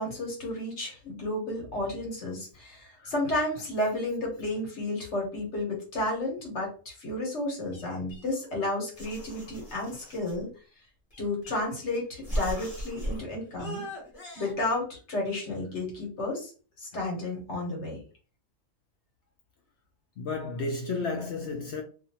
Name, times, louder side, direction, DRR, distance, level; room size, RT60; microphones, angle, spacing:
voice 1, 0.0-10.5 11.2-13.8 14.4-16.5 16.8-18.0, left 1 dB, 50° left, 1.2 m, -32 dB
sound 1, 7.7-8.6 9.0-10.4 11.1-11.8 12.2-13.2 13.6-14.5, equal, 25° left, 1.0 m, -37 dB
voice 2, 20.2-21.8, left 3 dB, 75° left, 0.6 m, -32 dB
2.6 x 2.4 x 2.8 m
omnidirectional pair, 1.7 m